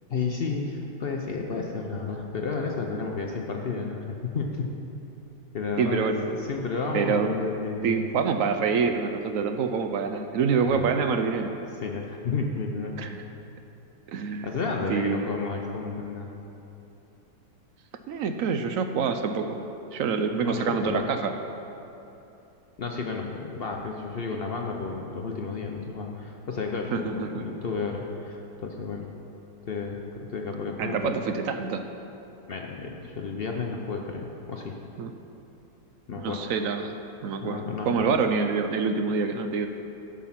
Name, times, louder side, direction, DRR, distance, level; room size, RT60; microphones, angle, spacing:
voice 1, 0.1-4.7 5.5-8.1 10.6-11.0 11.3-11.4 11.8-12.9 14.4-16.3 20.4-21.1 22.8-29.1 29.6-30.0 30.3-31.1 32.5-34.8 36.1-36.4 37.4-38.2, left 4 dB, 70° left, 1 dB, 0.5 m, -32 dB
voice 2, 5.8-6.2 6.9-7.4 7.8-11.5 13.0-13.2 14.1-14.5 14.9-15.3 18.1-19.7 19.9-21.3 26.9-27.5 30.8-31.8 35.0-35.1 36.2-36.9 37.2-39.7, right 5 dB, 75° right, 7 dB, 0.7 m, -26 dB
11.0 x 7.3 x 5.7 m, 3.0 s
omnidirectional pair, 2.0 m